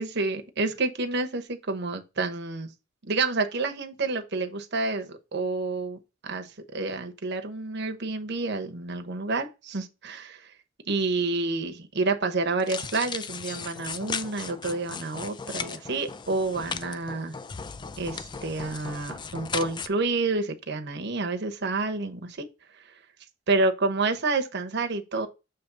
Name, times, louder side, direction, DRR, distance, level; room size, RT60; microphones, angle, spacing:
voice 1, 0.0-2.7 3.0-10.5 10.9-17.3 18.0-22.5 23.5-25.3, right 3 dB, 60° right, 1.0 m, -29 dB
sound 1, 12.6-19.9, left 5 dB, 25° left, 0.4 m, -37 dB
6.8 x 3.1 x 6.0 m
head